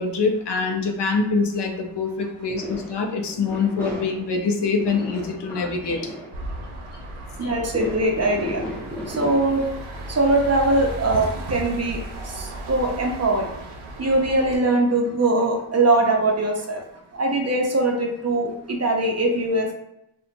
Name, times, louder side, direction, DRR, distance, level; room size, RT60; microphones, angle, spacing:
voice 1, 0.0-6.1 7.4-7.5, left 4 dB, 60° left, 2 dB, 0.6 m, -24 dB
sound 1, 2.5-10.1, left 1 dB, 5° left, 0.9 m, -36 dB
sound 2, 6.3-14.6, right 1 dB, 85° right, 0.7 m, -35 dB
voice 2, 7.4-8.6 9.1-9.6 10.1-12.0 12.3-13.5 14.0-16.8 17.2-19.7, right 2 dB, 35° right, 1 dB, 0.6 m, -21 dB
2.7 x 2.2 x 2.5 m, 0.82 s
wide cardioid pair, 90°, 48 cm